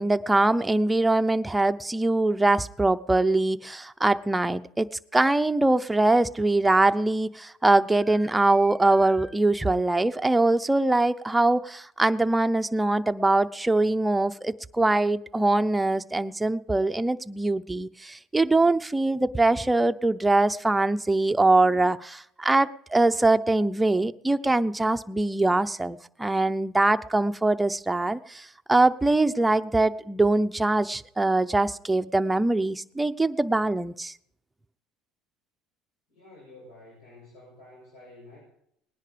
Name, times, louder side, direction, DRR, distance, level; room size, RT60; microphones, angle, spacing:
voice 1, 0.0-4.9 5.1-34.1, right 2 dB, 10° right, 9 dB, 0.6 m, -23 dB
voice 2, 36.1-38.4, left 2 dB, 80° left, -3 dB, 6.8 m, -50 dB
19.5 x 10.5 x 5.1 m, 0.72 s
supercardioid pair, 100°, 0 cm